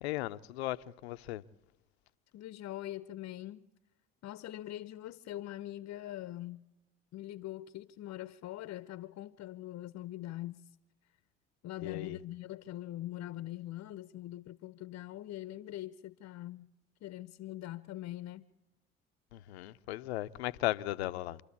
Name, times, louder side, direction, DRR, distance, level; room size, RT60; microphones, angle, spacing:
voice 1, 0.0-1.4 11.8-12.2 19.3-21.4, left 16 dB, 90° left, 0.7 m, -36 dB
voice 2, 2.3-3.7 4.2-6.6 7.1-10.7 11.6-16.7 17.0-18.5, left 14 dB, 55° left, 0.8 m, -43 dB
27.0 x 13.0 x 8.5 m
hypercardioid pair, 65°, 31 cm